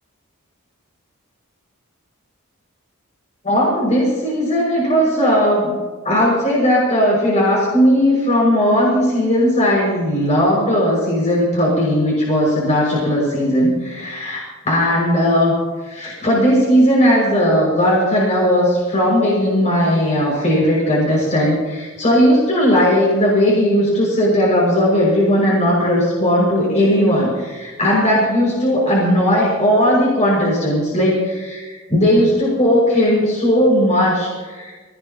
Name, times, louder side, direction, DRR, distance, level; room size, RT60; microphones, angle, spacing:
voice 1, 3.4-5.8 6.0-15.5 15.8-34.7, equal, 35° left, -5 dB, 6.3 m, -17 dB
25.0 x 18.5 x 3.0 m, 1.3 s
head